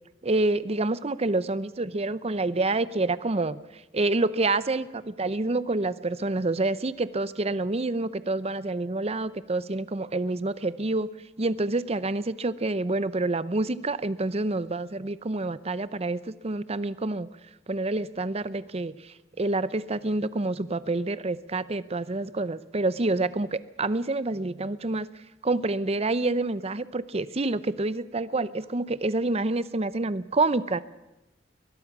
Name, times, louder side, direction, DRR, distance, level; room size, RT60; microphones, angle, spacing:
voice 1, 0.2-3.6 3.9-11.1 11.4-17.3 17.7-25.1 25.4-30.8, right 2 dB, 35° right, 15 dB, 0.7 m, -27 dB
22.0 x 21.0 x 6.1 m, 0.99 s
head